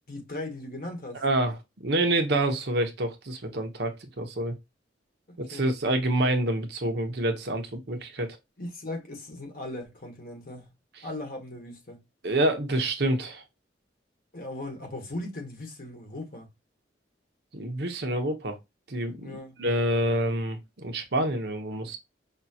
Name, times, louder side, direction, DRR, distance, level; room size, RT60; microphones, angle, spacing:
voice 1, 0.1-1.2 5.3-5.7 8.6-10.7 11.0-12.0 14.3-16.5 19.2-19.6, left 1 dB, 50° left, 1.4 m, -38 dB
voice 2, 1.2-4.6 5.4-8.4 12.2-13.4 17.5-18.6 18.9-22.0, right 1 dB, 60° right, 0.9 m, -27 dB
5.6 x 2.4 x 2.8 m
head